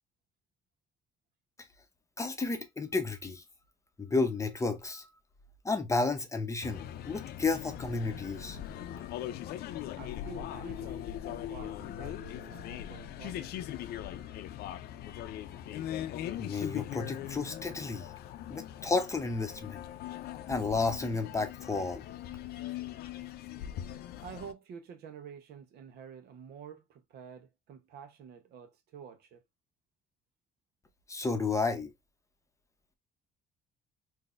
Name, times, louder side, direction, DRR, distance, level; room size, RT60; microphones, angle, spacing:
voice 1, 2.2-3.4 4.0-5.1 5.6-8.6 16.4-18.1 18.5-19.8 20.5-22.0 31.1-31.9, left 3 dB, 20° left, 0.7 m, -32 dB
sound 1, 6.6-24.5, left 11 dB, 70° left, 0.5 m, -40 dB
voice 2, 10.0-13.7 24.2-29.4, right 7 dB, 70° right, 0.9 m, -49 dB
3.9 x 2.7 x 2.4 m
cardioid pair, 110°, 17 cm